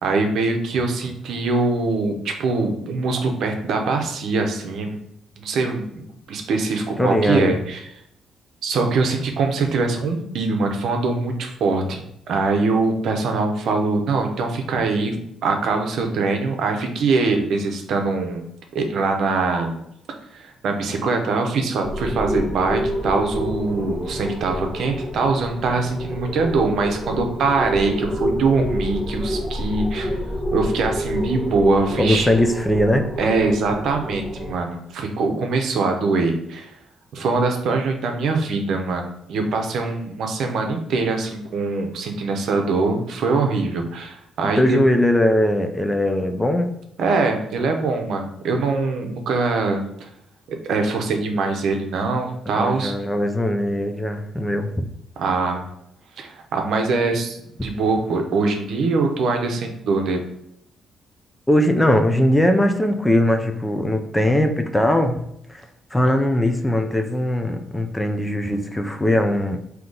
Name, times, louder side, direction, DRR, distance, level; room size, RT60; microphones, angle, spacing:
voice 1, 0.0-5.0 5.4-5.8 6.3-7.8 8.6-15.2 15.4-18.4 18.7-19.8 20.3-30.2 30.5-32.3 33.2-36.7 37.1-44.8 47.0-50.1 50.5-53.0 55.2-55.6 56.2-60.2, right 3 dB, 70° right, 4 dB, 0.7 m, -23 dB
voice 2, 7.0-7.5 32.0-33.1 44.6-46.7 52.5-54.8 61.5-65.2 65.5-65.6 65.9-69.6, left 1 dB, 10° left, 6 dB, 0.5 m, -20 dB
sound 1, 21.8-34.5, equal, 30° left, 1.0 m, -28 dB
3.8 x 2.8 x 3.8 m, 0.76 s
cardioid pair, 90°, 0 cm